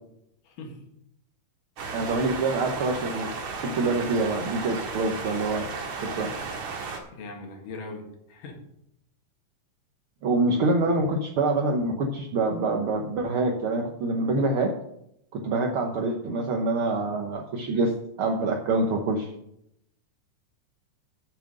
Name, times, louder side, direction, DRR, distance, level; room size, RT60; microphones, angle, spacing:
voice 1, 0.5-0.8 7.1-8.6, left 2 dB, 80° left, 2 dB, 3.4 m, -40 dB
sound 1, 1.8-7.0, right 4 dB, 55° right, 2.5 m, -34 dB
voice 2, 1.9-3.3 3.6-5.7 6.1-6.3 10.2-14.7 15.3-17.9 18.2-19.3, right 2 dB, 70° right, 2 dB, 1.3 m, -25 dB
7.7 x 7.6 x 7.5 m, 0.76 s
omnidirectional pair, 3.8 m